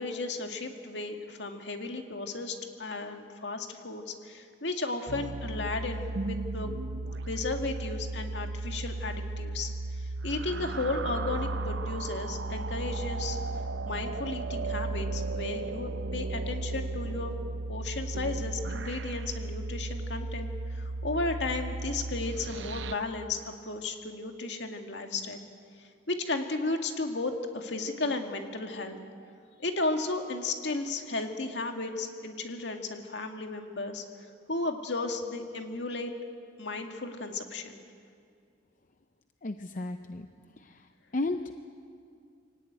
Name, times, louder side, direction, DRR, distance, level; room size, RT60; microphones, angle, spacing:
voice 1, 0.0-6.7 7.3-13.4 13.8-17.3 17.7-25.4 25.8-29.0 29.6-34.0 34.5-36.1 36.6-37.8, left 3 dB, 70° left, 4 dB, 2.1 m, -34 dB
sound 1, 5.1-22.9, right 2 dB, 80° right, 0.8 m, -35 dB
voice 2, 39.4-40.3 40.6-41.6, left 2 dB, 45° left, 8 dB, 0.6 m, -34 dB
24.5 x 17.5 x 9.4 m, 2.3 s
head